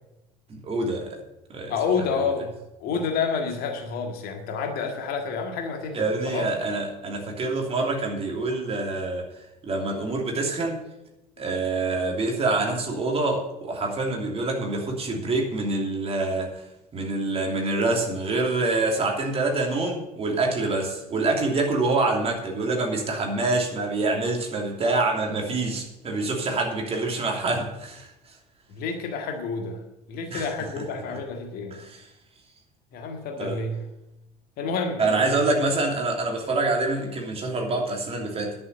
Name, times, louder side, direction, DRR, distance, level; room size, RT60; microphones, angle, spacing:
voice 1, 0.5-1.2 1.5-1.7 2.1-2.2 5.9-9.3 9.6-10.8 11.4-16.6 16.9-28.1 30.3-30.5 31.1-31.2 31.7-32.1 33.4-33.6 35.0-38.5, right 2 dB, 30° right, 1 dB, 3.0 m, -26 dB
voice 2, 1.7-2.5 2.8-6.5 28.7-29.8 30.1-31.8 32.9-33.8 34.6-35.4, left 5 dB, 50° left, 4 dB, 1.9 m, -29 dB
11.0 x 7.0 x 8.3 m, 0.91 s
figure-of-eight pair, 65°, 20 cm